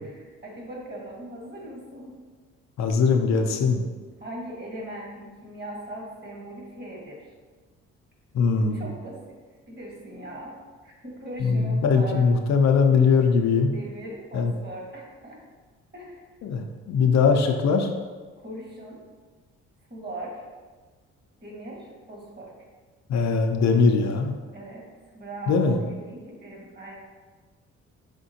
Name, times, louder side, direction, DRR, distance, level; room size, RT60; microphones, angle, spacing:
voice 1, 0.0-2.1 4.2-7.3 8.6-9.4 9.7-12.3 13.7-15.4 15.9-16.2 18.4-19.0 19.9-20.4 21.4-22.5 24.5-24.9 25.1-27.0, right 1 dB, 35° right, -2 dB, 1.5 m, -39 dB
voice 2, 2.8-3.8 8.3-8.8 11.4-13.7 14.3-14.5 16.4-17.9 23.1-24.4 25.5-25.8, left 5 dB, 65° left, 4 dB, 0.5 m, -21 dB
5.0 x 3.5 x 2.7 m, 1.4 s
cardioid pair, 90°, 30 cm